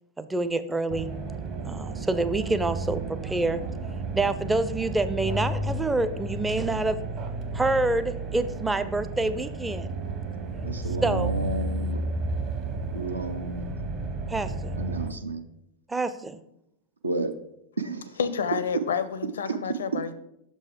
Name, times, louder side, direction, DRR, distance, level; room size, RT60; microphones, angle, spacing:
voice 1, 0.2-1.1 1.7-3.6 4.1-7.0 7.5-9.9 11.0-11.3 14.3-14.7 15.9-16.4, right 2 dB, 10° right, 11 dB, 0.4 m, -27 dB
sound 1, 0.9-15.1, right 2 dB, 35° right, 0.9 m, -32 dB
voice 2, 10.6-12.0 12.9-13.8 14.8-15.4 17.0-17.3 17.8-18.1, right 2 dB, 80° right, 8 dB, 0.6 m, -32 dB
voice 3, 18.2-20.1, left 6 dB, 65° left, 14 dB, 0.5 m, -29 dB
6.5 x 5.3 x 4.9 m, 0.81 s
figure-of-eight pair, 90°, 0 cm